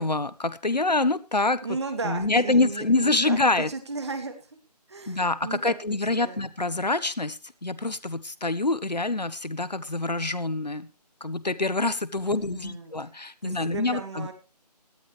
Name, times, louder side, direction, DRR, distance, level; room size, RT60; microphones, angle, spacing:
voice 1, 0.0-1.6 2.0-3.7 5.1-10.9 11.2-14.3, left 2 dB, 75° left, 15 dB, 1.3 m, -26 dB
voice 2, 1.6-3.4 3.7-4.4 4.9-5.7 6.2-6.4 12.2-12.9 13.4-14.3, right 4 dB, 40° right, 7 dB, 2.8 m, -35 dB
17.5 x 12.5 x 3.3 m, 0.29 s
figure-of-eight pair, 155°, 21 cm